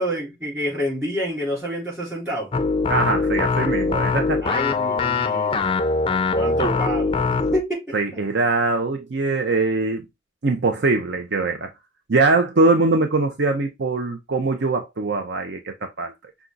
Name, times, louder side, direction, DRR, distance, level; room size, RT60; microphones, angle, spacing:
voice 1, 0.0-2.5 4.4-5.7 6.3-7.2 7.5-8.2, equal, 15° right, 3.6 m, -28 dB
sound 1, 2.5-7.6, left 4 dB, 30° left, 0.4 m, -22 dB
voice 2, 2.9-4.4 7.9-10.1 10.4-11.7 12.1-16.1, right 3 dB, 60° right, 0.6 m, -22 dB
5.8 x 2.4 x 3.8 m
head